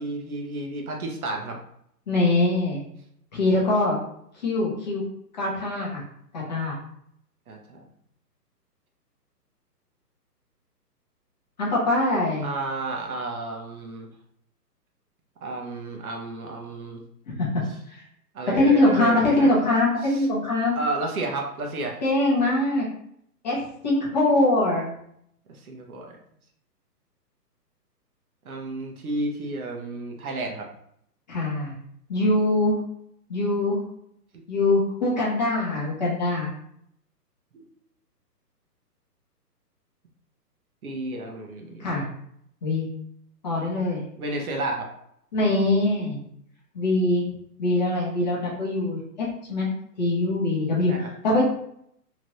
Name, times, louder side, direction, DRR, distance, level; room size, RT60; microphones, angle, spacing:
voice 1, 0.0-1.6 7.5-7.9 12.4-14.1 15.4-17.0 18.3-19.5 20.0-20.3 20.7-22.0 25.5-26.2 28.4-30.7 34.3-34.5 37.5-37.7 40.8-42.1 44.2-44.9 50.9-51.1, right 2 dB, 60° right, 1 dB, 0.8 m, -32 dB
voice 2, 2.1-2.8 3.3-4.0 4.4-5.0 5.4-6.0 6.3-6.7 11.6-12.5 17.9-18.0 18.5-20.8 22.0-22.9 23.4-24.8 31.3-31.8 32.1-32.8 33.3-33.8 34.5-36.5 41.8-42.1 42.6-42.9 43.4-44.0 45.3-46.2 46.7-47.2 47.6-49.7 50.0-51.4, left 2 dB, 25° left, -5 dB, 0.7 m, -23 dB
2.9 x 2.5 x 3.0 m, 0.71 s
hypercardioid pair, 145°, 49 cm